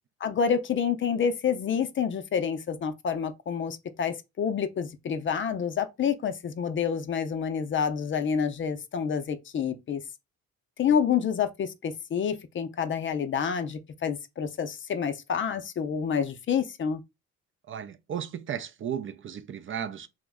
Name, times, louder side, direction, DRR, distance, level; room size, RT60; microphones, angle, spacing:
voice 1, 0.2-10.0 10.8-17.0, left 7 dB, 40° left, 0.5 m, -28 dB
voice 2, 17.7-20.1, right 8 dB, 45° right, 0.4 m, -35 dB
3.0 x 2.1 x 3.5 m
cardioid pair, 90°, 30 cm